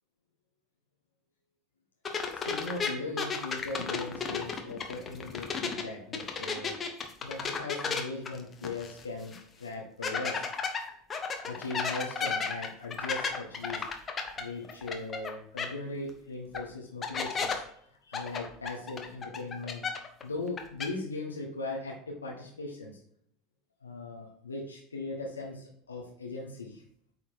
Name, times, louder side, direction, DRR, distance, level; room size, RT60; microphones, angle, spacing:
sound 1, 2.0-5.8 6.1-9.0 9.3-9.4 10.0-15.3 15.6-15.7 16.5-16.6 17.0-17.5 18.1-20.2 20.5-20.9, left 5 dB, 30° left, 1.2 m, -33 dB
voice 1, 2.5-6.8 7.2-10.5 11.4-19.8 20.2-23.0 23.8-26.8, left 3 dB, 85° left, -1 dB, 1.1 m, -39 dB
8.7 x 4.2 x 4.6 m, 0.67 s
figure-of-eight pair, 75°, 0 cm